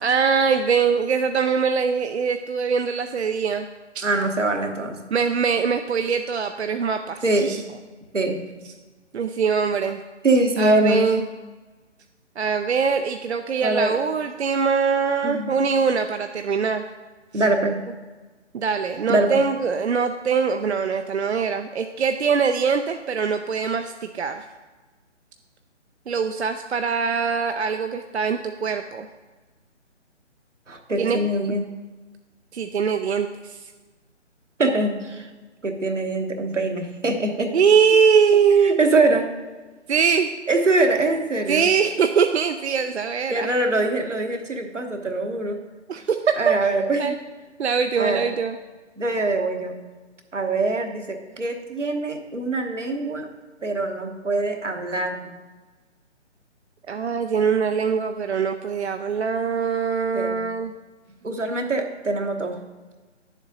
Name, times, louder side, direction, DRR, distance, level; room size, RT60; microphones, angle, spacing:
voice 1, 0.0-3.7 3.9-4.0 5.1-7.6 9.1-10.0 10.6-11.2 12.4-16.8 17.3-17.4 18.5-24.5 26.1-29.1 31.0-31.2 32.5-33.6 37.5-38.8 39.9-40.3 41.5-43.5 45.9-46.5 47.0-47.2 47.6-48.6 56.9-60.7, right 6 dB, 65° right, 7 dB, 0.5 m, -22 dB
voice 2, 4.0-5.0 7.2-7.5 8.1-8.4 10.2-11.1 13.6-14.0 15.2-15.5 17.3-17.8 19.1-19.4 30.7-31.7 34.6-35.3 35.6-37.6 38.6-39.3 40.5-41.7 43.3-45.6 46.4-47.1 48.0-48.3 49.0-49.8 50.3-53.3 53.6-55.3 60.1-60.4 61.2-62.6, right 2 dB, 80° right, 4 dB, 1.1 m, -23 dB
9.7 x 7.2 x 2.7 m, 1.3 s
figure-of-eight pair, 145°, 36 cm